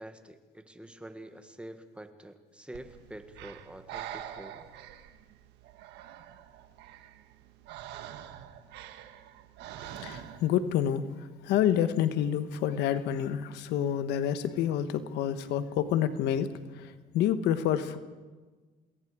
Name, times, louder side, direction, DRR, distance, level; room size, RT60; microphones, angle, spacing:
voice 1, 0.0-4.7, right 1 dB, 5° right, 8 dB, 1.6 m, -46 dB
Breathing, 2.7-10.6, right 11 dB, 85° right, 1.5 m, -45 dB
voice 2, 9.8-18.0, left 10 dB, 85° left, 12 dB, 1.3 m, -28 dB
27.0 x 21.0 x 4.9 m, 1.3 s
cardioid pair, 110°, 17 cm